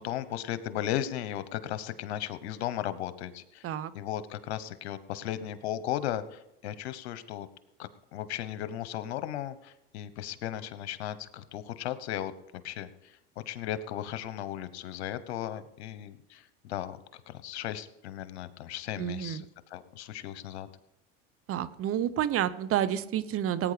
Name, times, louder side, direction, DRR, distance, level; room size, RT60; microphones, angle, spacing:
voice 1, 0.0-7.5 7.8-13.2 13.5-20.7, left 11 dB, 80° left, 13 dB, 1.2 m, -36 dB
voice 2, 19.0-19.4 21.5-23.7, right 11 dB, 45° right, 14 dB, 1.0 m, -29 dB
18.5 x 9.1 x 5.1 m, 0.85 s
hypercardioid pair, 95°, 32 cm